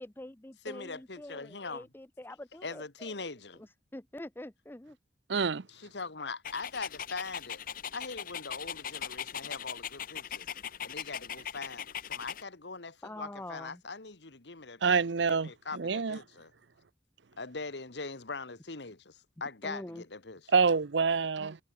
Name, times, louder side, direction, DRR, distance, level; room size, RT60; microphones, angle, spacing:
voice 1, 0.0-3.1 3.5-5.0 13.0-13.8 19.6-20.0, left 1 dB, 10° left, 0.6 m, -45 dB
voice 2, 0.6-1.9 2.6-3.7 5.7-7.6 7.9-10.5 10.8-14.8 15.3-16.5 17.4-20.4, left 4 dB, 75° left, 1.8 m, -41 dB
voice 3, 5.3-5.7 14.8-16.2 20.5-21.6, right 5 dB, 85° right, 0.7 m, -27 dB
Dog, 6.4-12.4, left 9 dB, 50° left, 1.0 m, -40 dB
head